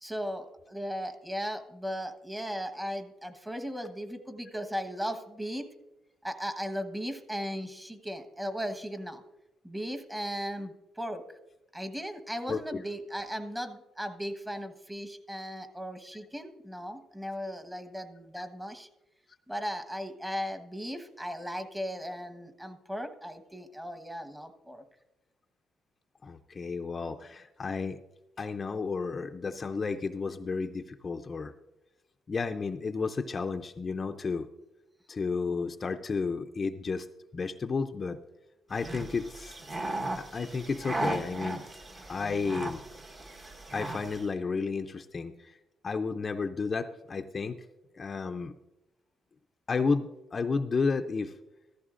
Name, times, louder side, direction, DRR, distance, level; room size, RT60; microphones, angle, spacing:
voice 1, 0.0-5.6 6.2-9.2 9.6-11.2 11.7-18.9 19.5-24.8, equal, 10° right, 7 dB, 1.2 m, -37 dB
voice 2, 12.5-12.8 18.4-18.5 26.2-28.0 28.4-31.5 32.3-34.5 35.1-37.1 37.3-38.2 38.7-39.6 40.2-41.6 42.1-42.8 43.7-45.5 45.8-47.6 48.0-48.5 49.7-51.3, left 4 dB, 35° left, 6 dB, 0.5 m, -32 dB
sound 1, 38.7-44.3, right 2 dB, 35° right, 1.2 m, -37 dB
14.5 x 14.0 x 2.5 m, 0.96 s
cardioid pair, 90°, 0 cm